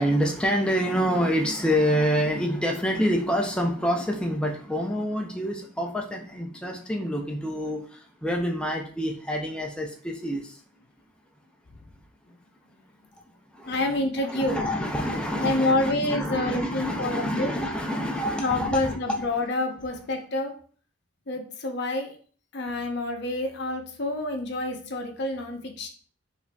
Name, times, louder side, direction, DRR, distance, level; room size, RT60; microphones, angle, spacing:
voice 1, 0.0-10.6 13.5-19.2, equal, 5° left, 1 dB, 0.4 m, -27 dB
voice 2, 13.7-14.6 15.4-17.5 18.4-20.5 21.3-22.2 22.5-25.9, left 2 dB, 55° left, 3 dB, 0.6 m, -28 dB
4.8 x 2.6 x 2.2 m, 0.44 s
head